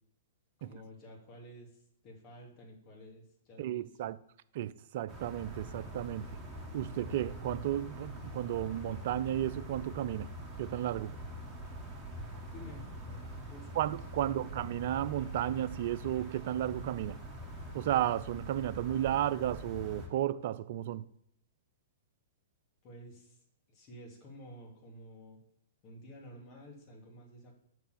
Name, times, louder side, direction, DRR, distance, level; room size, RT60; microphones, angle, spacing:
voice 1, 0.6-4.1 12.5-14.5 22.8-25.4 25.8-27.5, equal, 35° left, 2.5 m, -52 dB
voice 2, 3.6-4.2 4.5-6.3 6.7-10.3 10.6-11.1 13.8-17.2 17.7-21.1, right 12 dB, 50° right, 0.4 m, -33 dB
sound 1, 5.1-20.1, right 1 dB, 10° right, 2.0 m, -44 dB
6.4 x 4.7 x 6.8 m
figure-of-eight pair, 110°, 0 cm